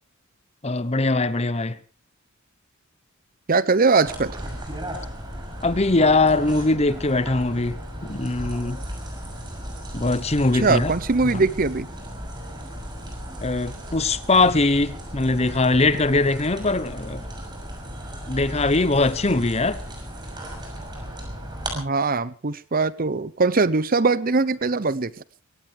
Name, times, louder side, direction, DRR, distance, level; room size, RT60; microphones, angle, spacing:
voice 1, 0.6-1.8 5.6-8.8 9.9-10.9 11.2-11.4 13.4-17.3 18.3-19.8, left 2 dB, 30° left, 0.9 m, -21 dB
voice 2, 3.5-4.4 10.5-11.9 21.7-25.1, right 3 dB, 40° right, 0.8 m, -21 dB
sound 1, 4.0-21.8, equal, 20° right, 6.2 m, -35 dB
23.0 x 18.0 x 3.5 m
head